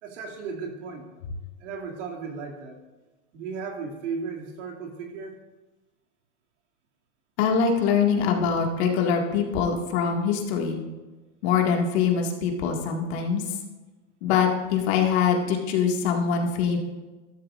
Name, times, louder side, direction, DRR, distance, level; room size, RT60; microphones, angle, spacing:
voice 1, 0.0-1.1 1.6-2.8 3.3-5.4, right 5 dB, 70° right, 0 dB, 2.6 m, -35 dB
voice 2, 7.4-10.8 11.4-13.4 14.2-16.8, left 6 dB, 55° left, 1 dB, 2.1 m, -23 dB
14.5 x 12.5 x 2.5 m, 1.2 s
supercardioid pair, 155°, 38 cm